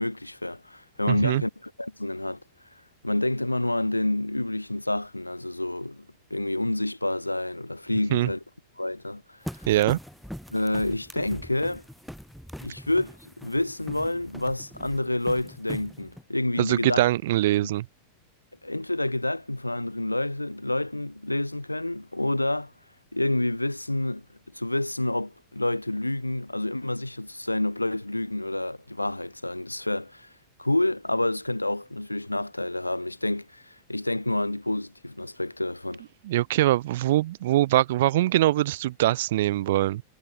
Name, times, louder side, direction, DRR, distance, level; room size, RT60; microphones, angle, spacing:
voice 1, 0.0-2.4 3.0-8.4 8.8-9.4 10.5-11.8 12.6-17.0 17.6-17.7 18.6-22.7 23.1-24.2 24.5-30.3 30.6-36.0, left 1 dB, 85° left, 3.6 m, -28 dB
voice 2, 1.1-1.4 8.1-8.3 9.7-10.0 16.6-17.9 36.2-40.0, right 15 dB, 55° right, 0.7 m, -23 dB
sound 1, 9.4-16.2, equal, ahead, 2.5 m, -42 dB
figure-of-eight pair, 90°, 0 cm